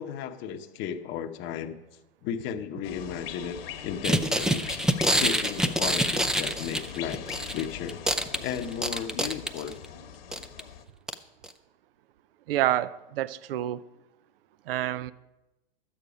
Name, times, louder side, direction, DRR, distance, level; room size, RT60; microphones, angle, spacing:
voice 1, 0.0-1.8 2.2-4.7 5.1-7.2 7.5-8.0 8.4-9.7, left 8 dB, 40° left, 7 dB, 0.9 m, -34 dB
sound 1, 2.8-10.8, left 8 dB, 70° left, 1.4 m, -41 dB
sound 2, 4.0-7.6 7.9-9.8 10.3-10.6 11.1-11.2 11.4-11.5, right 1 dB, ahead, 0.4 m, -26 dB
voice 2, 12.5-13.8 14.7-15.1, right 13 dB, 70° right, 18 dB, 0.6 m, -28 dB
12.0 x 8.7 x 5.1 m, 0.98 s
hypercardioid pair, 105°, 30 cm